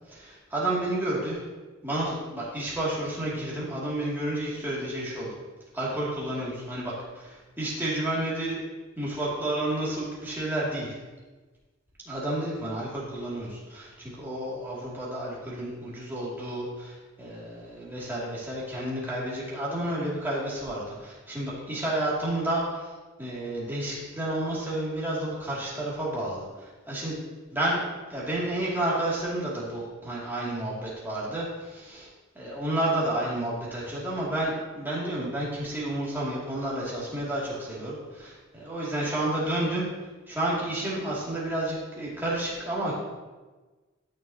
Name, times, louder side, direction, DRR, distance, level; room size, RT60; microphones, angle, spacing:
voice 1, 0.1-1.4 1.8-5.3 5.7-8.6 9.0-10.9 12.1-22.9 23.2-27.2 27.5-27.8 28.1-32.1 32.3-39.9 40.3-42.9, right 1 dB, 10° right, -7 dB, 2.5 m, -31 dB
13.0 x 6.4 x 2.9 m, 1.3 s
head